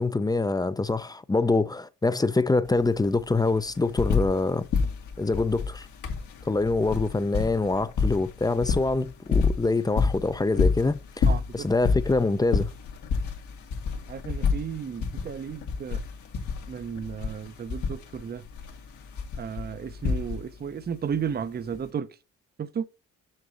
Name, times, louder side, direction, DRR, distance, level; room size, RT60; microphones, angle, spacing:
voice 1, 0.0-4.7 5.2-5.9 6.4-12.7, left 3 dB, 15° left, 0.5 m, -25 dB
sound 1, 2.7-2.8 3.0-4.4 4.7-20.7 21.7-21.8, left 5 dB, 75° left, 2.0 m, -28 dB
voice 2, 11.3-11.7 14.1-16.0 16.7-18.4 19.4-22.1 22.6-22.9, right 7 dB, 35° right, 0.7 m, -33 dB
6.6 x 6.0 x 5.3 m
cardioid pair, 90°, 30 cm